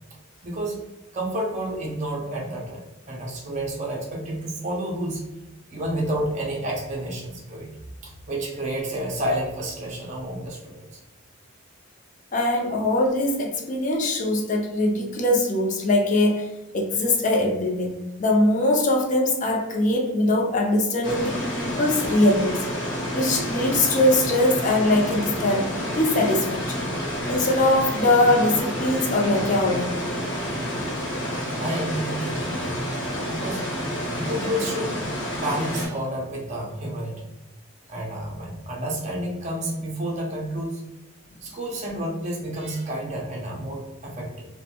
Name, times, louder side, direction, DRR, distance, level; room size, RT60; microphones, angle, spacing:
voice 1, 0.4-0.8 1.1-2.8 3.1-5.2 5.7-7.7 8.0-10.8 31.6-33.0 33.3-33.7 34.1-35.0 35.3-37.2 37.9-40.8 41.4-44.5, right 1 dB, 35° right, -2 dB, 0.5 m, -30 dB
voice 2, 12.3-22.7 23.1-25.7 25.9-26.8 27.3-30.0, left 1 dB, 35° left, 1 dB, 0.5 m, -22 dB
sound 1, 21.0-35.9, equal, 60° left, 0.8 m, -29 dB
2.6 x 2.1 x 2.8 m, 1.0 s
head